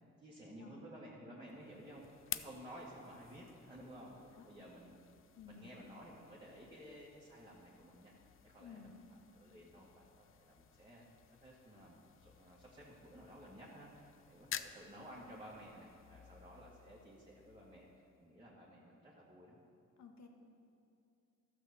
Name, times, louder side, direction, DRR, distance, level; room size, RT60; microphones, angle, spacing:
voice 1, 0.2-4.2 4.4-5.0 5.5-8.1 8.4-9.0 9.3-11.0 11.4-17.9 18.2-19.6, equal, 15° right, -6 dB, 1.9 m, -54 dB
sound 1, 1.4-18.4, left 9 dB, 45° left, 0.5 m, -53 dB
voice 2, 4.2-4.5 5.4-5.7 8.6-9.0 20.0-20.3, left 6 dB, 65° left, 4 dB, 1.4 m, -55 dB
13.0 x 6.0 x 6.9 m, 2.6 s
cardioid pair, 90°, 30 cm